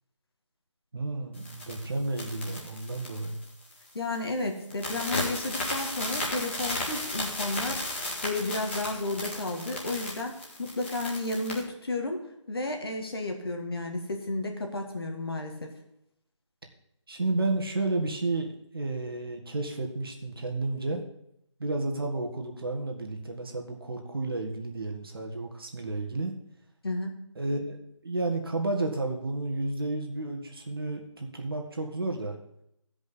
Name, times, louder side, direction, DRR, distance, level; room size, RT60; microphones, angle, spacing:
voice 1, 0.9-3.4 17.1-21.0 21.6-26.3 27.3-32.4, right 2 dB, 50° right, 2 dB, 1.7 m, -32 dB
sound 1, 1.4-3.9 4.1-4.4 4.7-11.6, left 1 dB, 20° left, 1.9 m, -34 dB
voice 2, 3.9-7.8 8.2-15.7 26.8-27.2, left 2 dB, 50° left, 3 dB, 1.8 m, -32 dB
14.5 x 5.3 x 5.2 m, 0.78 s
figure-of-eight pair, 180°, 16 cm